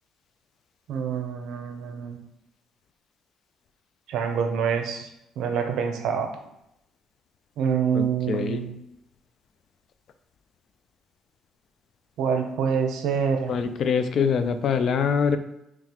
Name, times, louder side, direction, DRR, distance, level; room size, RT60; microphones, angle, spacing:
voice 1, 0.9-2.2 4.1-5.1 5.4-6.3 7.6-8.8 12.2-13.5, right 7 dB, 75° right, 4 dB, 0.6 m, -26 dB
voice 2, 7.9-8.6 13.5-15.4, left 6 dB, 55° left, 10 dB, 0.3 m, -24 dB
3.8 x 3.0 x 2.9 m, 0.83 s
cardioid pair, 115°, 0 cm